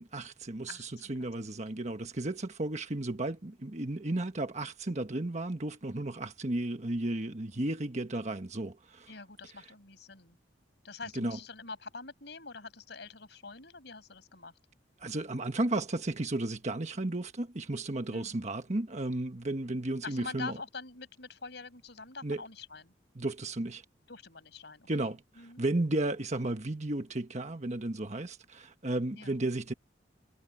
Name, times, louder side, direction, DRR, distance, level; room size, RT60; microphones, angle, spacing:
voice 1, 0.0-9.1 11.1-11.4 15.0-20.6 22.2-22.4 23.1-23.8 24.9-29.7, right 2 dB, 40° right, 1.3 m, -34 dB
voice 2, 0.7-1.3 9.1-10.4 10.8-14.5 18.1-18.4 20.0-22.9 24.1-25.7 29.1-29.4, left 4 dB, 65° left, 5.5 m, -45 dB
head